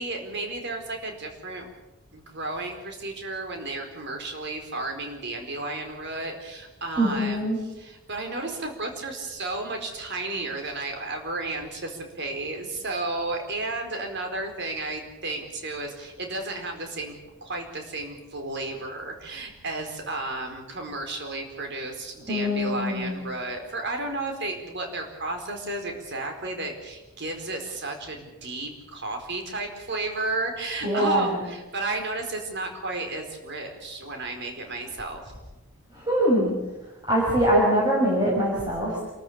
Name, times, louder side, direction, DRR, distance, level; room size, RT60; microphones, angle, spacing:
voice 1, 0.0-1.7 2.1-7.4 7.8-17.1 17.4-35.2, right 2 dB, 50° right, 4 dB, 4.5 m, -33 dB
voice 2, 7.0-7.6 22.3-23.2 30.8-31.4 35.9-36.5 37.1-39.0, equal, 20° right, -5 dB, 6.0 m, -23 dB
28.0 x 14.0 x 8.7 m, 1.1 s
head